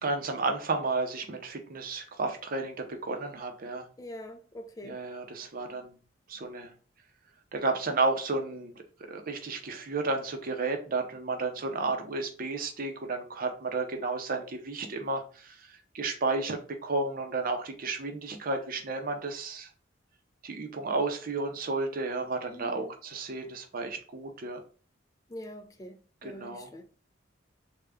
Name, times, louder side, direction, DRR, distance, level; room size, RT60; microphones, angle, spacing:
voice 1, 0.0-3.9 4.8-6.0 6.3-6.7 7.5-8.7 9.1-19.7 20.4-24.6 26.2-26.8, right 3 dB, 50° right, 0.5 m, -32 dB
voice 2, 4.0-5.0 22.5-22.9 25.3-26.8, left 1 dB, 20° left, 0.4 m, -44 dB
3.3 x 2.2 x 3.5 m
head